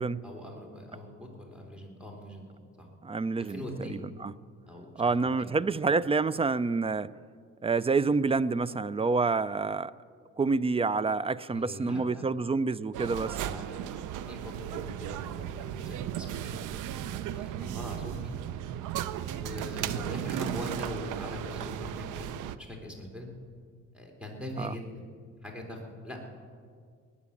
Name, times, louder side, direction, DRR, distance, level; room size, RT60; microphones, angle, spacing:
voice 1, 0.2-2.4 3.4-4.0 4.7-5.5 11.5-12.2 13.4-16.6 17.3-18.3 19.3-23.3 23.9-24.9 25.4-26.3, left 1 dB, 5° right, 1 dB, 3.7 m, -42 dB
voice 2, 3.0-4.3 5.0-7.1 7.6-9.9 10.4-13.4 24.6-24.8, right 4 dB, 20° right, 18 dB, 0.4 m, -28 dB
sound 1, 12.9-22.6, right 11 dB, 90° right, 0.6 m, -35 dB
19.5 x 9.8 x 7.2 m, 2.1 s
cardioid pair, 90°, 30 cm